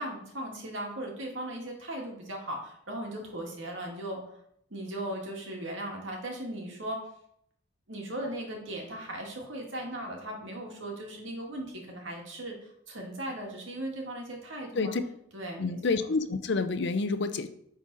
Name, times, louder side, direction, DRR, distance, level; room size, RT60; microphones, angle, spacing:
voice 1, 0.0-4.2 4.7-7.0 7.9-12.5 12.9-14.9 15.3-15.8, right 1 dB, 70° right, 0 dB, 1.9 m, -37 dB
voice 2, 15.6-17.5, left 3 dB, 55° left, 10 dB, 0.6 m, -28 dB
9.8 x 4.0 x 4.0 m, 0.71 s
head